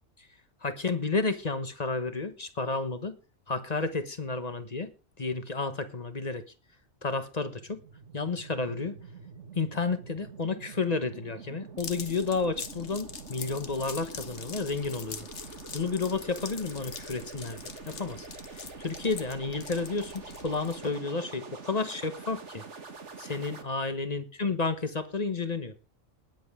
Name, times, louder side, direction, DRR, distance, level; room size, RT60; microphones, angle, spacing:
voice 1, 0.6-3.2 3.5-4.9 5.2-6.4 7.0-7.8 8.1-8.9 9.5-15.3 15.7-17.6 17.9-18.3 18.8-22.6 23.2-25.8, left 4 dB, 30° left, 1.2 m, -31 dB
sound 1, 7.2-23.6, right 5 dB, 60° right, 1.8 m, -46 dB
sound 2, 11.8-20.9, left 6 dB, 55° left, 1.4 m, -44 dB
19.5 x 7.7 x 3.6 m
omnidirectional pair, 1.4 m